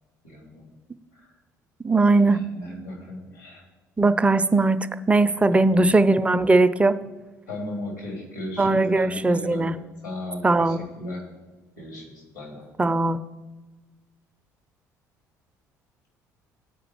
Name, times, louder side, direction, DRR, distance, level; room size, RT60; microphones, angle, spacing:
voice 1, 0.2-0.7 1.1-1.4 2.2-3.6 5.3-5.9 7.5-9.7 10.0-11.2 11.8-12.7, left 1 dB, 85° left, -2 dB, 2.7 m, -36 dB
voice 2, 1.8-2.4 4.0-6.9 8.6-9.7 10.4-10.8 12.8-13.2, right 2 dB, 15° right, 12 dB, 0.4 m, -19 dB
14.5 x 4.9 x 3.1 m, 1.2 s
figure-of-eight pair, 55°, 9 cm